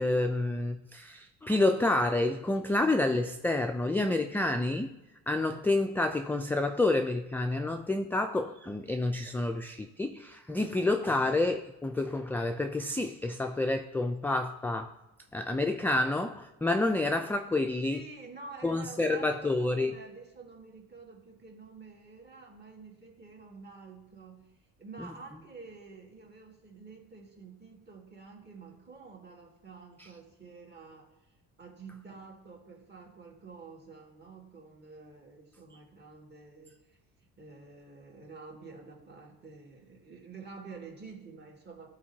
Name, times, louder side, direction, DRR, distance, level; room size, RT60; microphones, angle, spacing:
voice 1, 0.0-4.9 5.3-14.9 15.3-18.0 18.6-19.9, left 2 dB, 5° left, 0.3 m, -29 dB
voice 2, 10.7-11.1 17.9-24.5 24.8-31.1 31.6-37.0 37.4-41.9, right 4 dB, 30° right, 2.0 m, -49 dB
11.0 x 4.4 x 2.8 m
cardioid pair, 95°, 33 cm